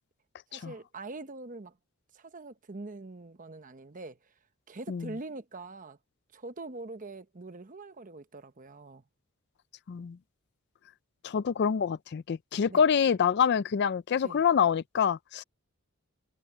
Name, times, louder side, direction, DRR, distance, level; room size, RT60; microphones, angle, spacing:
voice 1, 0.5-1.8 2.1-4.2 4.7-6.0 6.3-9.0 12.7-12.8 14.2-14.4, right 2 dB, 35° right, 0.9 m, -43 dB
voice 2, 11.2-15.4, left 7 dB, 50° left, 0.4 m, -26 dB
head